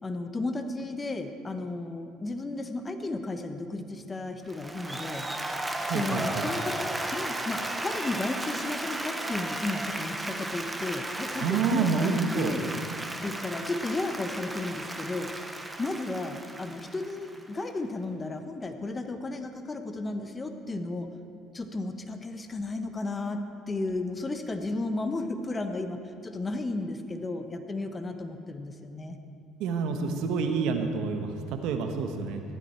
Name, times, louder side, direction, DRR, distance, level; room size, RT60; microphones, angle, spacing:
voice 1, 0.0-5.3 5.9-12.1 12.3-12.7 12.9-15.3 15.8-21.1 21.5-29.2, left 2 dB, 25° left, 7 dB, 1.1 m, -34 dB
Applause, 4.5-17.7, right 1 dB, 10° right, 1.0 m, -35 dB
voice 2, 5.8-6.4 11.4-12.5 29.6-32.4, right 5 dB, 75° right, 6 dB, 1.3 m, -28 dB
15.0 x 12.5 x 4.5 m, 2.4 s
supercardioid pair, 90°, 0 cm